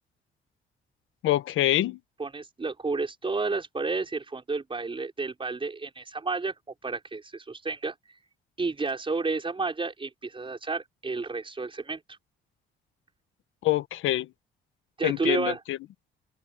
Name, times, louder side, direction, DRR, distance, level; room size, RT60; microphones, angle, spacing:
voice 1, 1.2-2.0 13.6-14.3 15.0-15.8, left 14 dB, 85° left, 1.3 m, -25 dB
voice 2, 2.2-6.5 6.8-7.9 8.6-12.2 15.0-15.6, right 3 dB, 25° right, 5.3 m, -31 dB
open air
cardioid pair, 90°, 20 cm